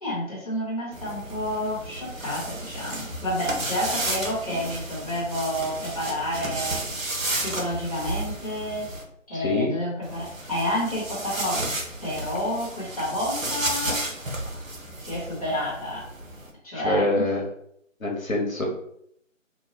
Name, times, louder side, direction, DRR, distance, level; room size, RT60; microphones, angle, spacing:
voice 1, 0.0-6.8 7.4-8.9 9.3-11.7 12.0-14.0 15.0-16.0 16.6-17.3, left 1 dB, 30° left, -8 dB, 1.0 m, -29 dB
sound 1, 0.9-9.0 10.0-16.5, right 2 dB, 80° right, 0.9 m, -33 dB
voice 2, 9.3-9.7 16.7-17.4 18.0-18.6, left 2 dB, 90° left, -1 dB, 1.0 m, -25 dB
2.8 x 2.3 x 2.9 m, 0.71 s
figure-of-eight pair, 160°, 40 cm